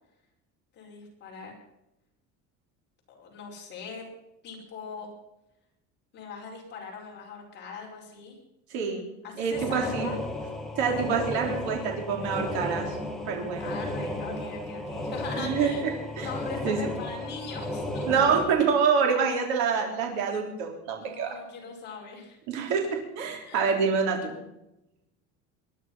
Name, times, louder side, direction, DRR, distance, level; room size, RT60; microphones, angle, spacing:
voice 1, 0.7-1.5 3.1-4.1 4.4-5.1 6.1-8.4 9.2-10.1 13.6-15.8 16.2-18.1 21.0-22.7 23.5-23.6, left 5 dB, 35° left, -2 dB, 5.3 m, -41 dB
voice 2, 8.7-9.1 9.4-10.1 10.8-13.0 13.3-13.7 15.4-15.7 16.2-16.3 16.6-16.9 18.1-21.3 22.5-22.8 23.2-24.4, right 6 dB, 80° right, 2 dB, 3.7 m, -26 dB
sound 1, 9.5-18.5, left 1 dB, ahead, 1.7 m, -34 dB
21.5 x 11.0 x 5.7 m, 0.89 s
cardioid pair, 170°, 29 cm